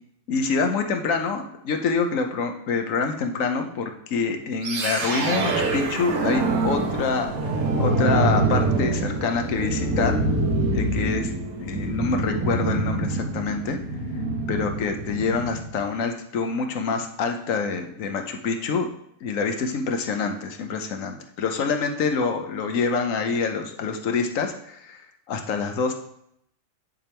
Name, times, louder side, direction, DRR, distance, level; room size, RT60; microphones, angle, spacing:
voice 1, 0.3-10.2 10.7-11.3 11.6-13.8 14.5-18.9 19.2-25.0 25.3-25.9, left 5 dB, 75° left, 5 dB, 1.2 m, -26 dB
sound 1, 4.6-15.7, right 2 dB, 90° right, 1.4 m, -25 dB
9.7 x 3.5 x 4.4 m, 0.74 s
omnidirectional pair, 1.4 m